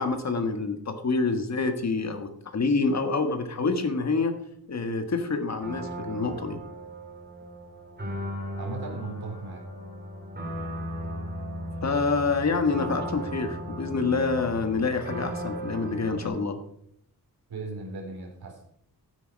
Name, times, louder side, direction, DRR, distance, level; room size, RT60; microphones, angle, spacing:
voice 1, 0.0-4.3 4.7-6.6 11.8-16.6, left 4 dB, 45° left, 7 dB, 1.5 m, -27 dB
sound 1, 5.6-16.3, equal, 25° right, 3.3 m, -36 dB
voice 2, 8.5-9.6 17.5-18.6, right 4 dB, 75° right, 1 dB, 4.1 m, -37 dB
13.0 x 9.6 x 5.3 m, 0.68 s
wide cardioid pair, 170°, 37 cm